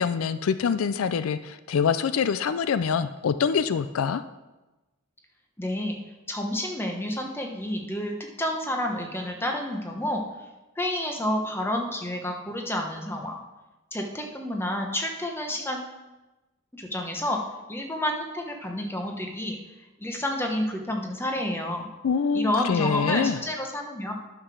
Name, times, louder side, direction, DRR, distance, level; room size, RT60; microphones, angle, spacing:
voice 1, 0.0-4.2 22.0-23.4, left 6 dB, 80° left, 12 dB, 0.4 m, -25 dB
voice 2, 5.6-6.0 6.3-10.2 10.8-13.4 13.9-15.9 16.7-17.4 17.7-19.6 20.0-21.9 22.3-24.1, left 1 dB, 10° left, 2 dB, 1.0 m, -29 dB
9.5 x 5.9 x 6.1 m, 1.1 s
head